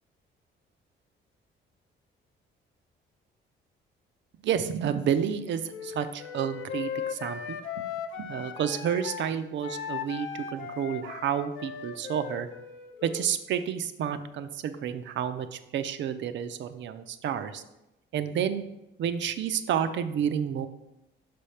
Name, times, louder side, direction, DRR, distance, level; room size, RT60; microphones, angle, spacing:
voice 1, 4.4-7.9 8.2-12.5 13.0-17.6 18.1-18.6 19.0-20.7, right 8 dB, 65° right, 10 dB, 0.6 m, -30 dB
Wind instrument woodwind instrument, 5.7-9.3 9.6-13.4, left 8 dB, 85° left, 0.5 m, -38 dB
6.0 x 3.4 x 5.6 m, 0.91 s
cardioid pair, 90°, 20 cm